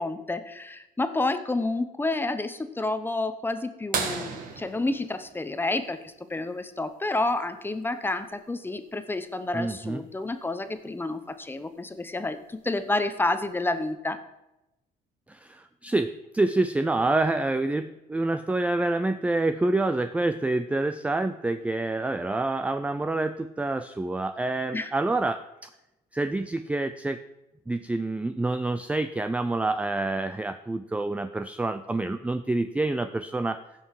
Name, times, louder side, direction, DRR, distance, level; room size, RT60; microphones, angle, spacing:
voice 1, 0.0-14.2 24.7-24.9, left 2 dB, 10° left, 10 dB, 0.8 m, -29 dB
sound 1, 3.9-6.4 8.3-8.4 10.6-10.7 12.4-12.7 13.5-13.6, right 5 dB, 55° right, 1.9 m, -33 dB
voice 2, 9.5-10.0 15.3-25.7 26.1-27.2 27.7-33.6, right 2 dB, 10° right, 10 dB, 0.4 m, -27 dB
15.5 x 5.6 x 4.8 m, 0.94 s
cardioid pair, 110°, 17 cm